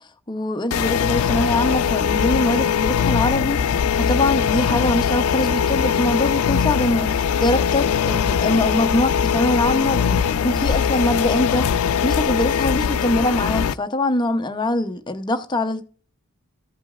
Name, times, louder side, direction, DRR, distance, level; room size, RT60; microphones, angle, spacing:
voice 1, 0.3-15.8, left 1 dB, 20° left, 0.6 m, -23 dB
sound 1, 0.7-13.7, left 7 dB, 75° left, 0.4 m, -21 dB
14.5 x 5.1 x 2.3 m
head